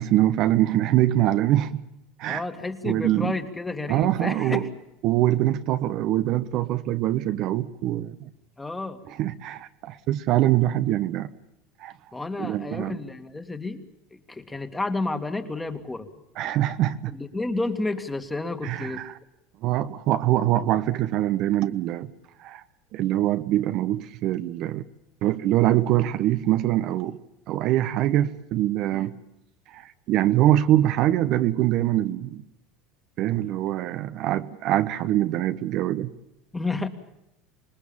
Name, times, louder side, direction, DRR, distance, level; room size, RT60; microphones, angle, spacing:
voice 1, 0.0-1.8 2.2-2.4 2.8-3.3 3.9-4.6 5.0-8.3 9.1-11.3 11.8-11.9 12.4-13.0 16.4-17.2 18.6-19.2 19.6-22.1 22.4-22.6 22.9-24.8 25.2-27.2 27.5-29.1 29.7-32.4 33.2-36.1, right 13 dB, 55° right, 1.0 m, -23 dB
voice 2, 2.2-4.7 8.6-9.0 12.1-13.8 14.3-16.1 17.1-19.0 28.9-29.1 36.5-36.9, left 2 dB, 10° left, 2.3 m, -31 dB
26.5 x 20.0 x 7.2 m
supercardioid pair, 105°, 0 cm